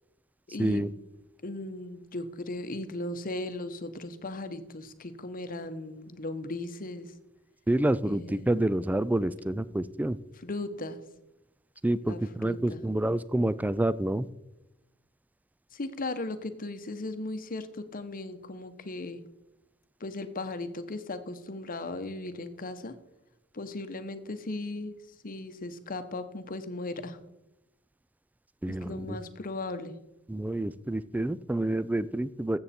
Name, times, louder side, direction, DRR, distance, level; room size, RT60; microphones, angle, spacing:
voice 1, 0.5-0.8 1.4-7.1 8.0-8.5 10.4-11.0 12.1-12.8 15.7-19.2 20.0-22.9 23.5-25.0 25.2-27.2 28.7-29.9, left 2 dB, 45° left, 10 dB, 0.9 m, -37 dB
voice 2, 7.7-10.2 11.8-14.3 28.6-29.2 30.3-32.6, right 1 dB, 10° right, 17 dB, 0.3 m, -28 dB
14.0 x 8.0 x 4.3 m, 0.91 s
head